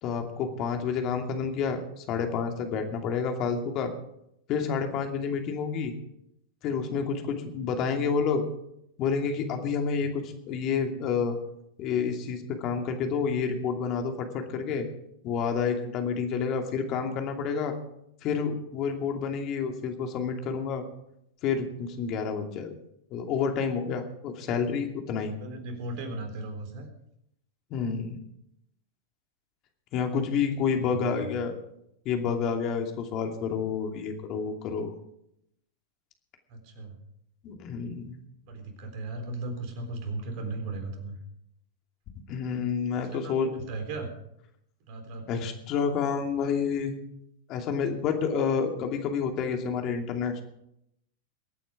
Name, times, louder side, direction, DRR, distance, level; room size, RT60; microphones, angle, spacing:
voice 1, 0.0-3.9 4.5-5.9 6.6-8.4 9.0-11.4 11.8-14.9 15.2-17.7 18.2-20.8 21.4-22.7 23.1-25.3 27.7-28.2 29.9-31.5 32.0-34.9 37.4-38.2 42.3-43.5 45.3-46.9 47.5-50.4, left 6 dB, 40° left, 4 dB, 2.6 m, -29 dB
voice 2, 25.4-26.9 30.7-31.4 36.5-37.0 38.4-41.2 42.9-44.1 44.9-45.5, right 2 dB, 50° right, 5 dB, 3.8 m, -37 dB
22.5 x 9.1 x 4.9 m, 0.77 s
figure-of-eight pair, 95°, 0 cm